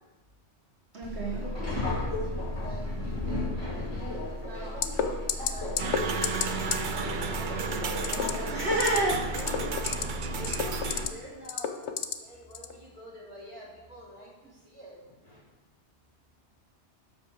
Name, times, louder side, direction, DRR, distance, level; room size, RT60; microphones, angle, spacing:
voice 1, 0.9-1.5 5.0-5.5 8.5-9.3, right 2 dB, 75° right, -5 dB, 1.8 m, -29 dB
Subway metro underground, 1.0-11.1, left 1 dB, 30° left, 2.6 m, -34 dB
voice 2, 2.6-4.8 5.4-6.4 6.8-8.6 9.3-10.0 10.3-15.4, equal, 25° right, -8 dB, 3.1 m, -47 dB
sound 1, 4.8-5.0 5.3-5.5 5.8-6.0 6.2-6.5 6.7-6.8 8.0-8.3 8.7-9.0 9.3-10.0 10.4-11.1 11.5-12.1 12.5-12.7, left 8 dB, 85° left, 1.0 m, -28 dB
sound 2, 5.8-11.1, right 5 dB, 50° right, 0.7 m, -33 dB
8.2 x 5.8 x 6.4 m, 1.2 s
omnidirectional pair, 1.2 m